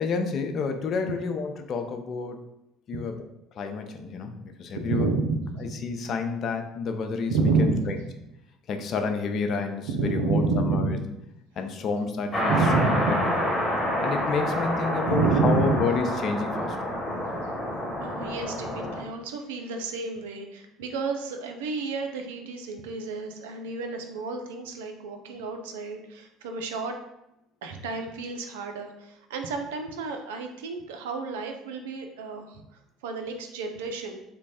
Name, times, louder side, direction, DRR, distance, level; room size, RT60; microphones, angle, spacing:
voice 1, 0.0-2.4 2.9-3.2 3.5-5.1 5.6-8.0 8.7-11.0 11.6-13.6 14.0-16.8, left 4 dB, 50° left, 5 dB, 0.5 m, -30 dB
voice 2, 4.8-5.7 7.3-8.0 9.9-11.0 12.5-13.4 15.1-15.9 18.0-26.9 27.6-32.6 33.0-34.2, right 3 dB, 75° right, 5 dB, 0.4 m, -29 dB
sound 1, 12.3-19.0, left 1 dB, 20° left, 1.2 m, -28 dB
3.1 x 2.2 x 4.1 m, 0.84 s
hypercardioid pair, 60°, 0 cm